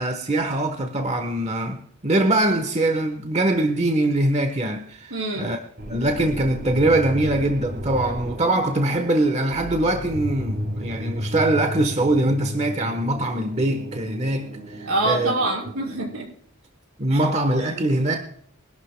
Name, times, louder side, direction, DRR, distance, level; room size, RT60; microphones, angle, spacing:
voice 1, 0.0-5.6 5.9-15.3 17.0-18.2, right 1 dB, 30° right, 1.1 m, -23 dB
voice 2, 5.1-5.5 14.8-16.3 17.1-17.2 17.6-17.9, right 2 dB, 80° right, 5.7 m, -26 dB
sound 1, 5.8-16.2, equal, 55° right, 5.0 m, -34 dB
23.5 x 12.0 x 2.2 m
head